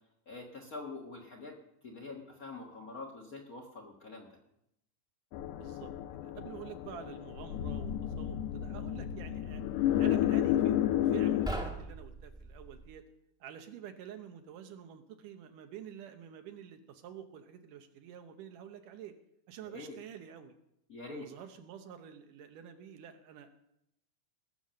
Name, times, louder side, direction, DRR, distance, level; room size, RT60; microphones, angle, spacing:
voice 1, 0.3-1.6 1.8-4.3 19.6-20.0 20.9-21.3, left 3 dB, 55° left, 1 dB, 1.0 m, -45 dB
sound 1, 5.3-11.5, left 11 dB, 80° left, 2.0 m, -31 dB
voice 2, 5.6-5.9 6.2-9.6 10.0-13.0 13.4-19.2 19.5-20.5 21.1-23.5, right 9 dB, 80° right, 7 dB, 2.6 m, -48 dB
sound 2, 11.3-12.9, right 1 dB, 5° right, 0.4 m, -40 dB
19.5 x 7.2 x 6.4 m, 0.80 s
omnidirectional pair, 3.7 m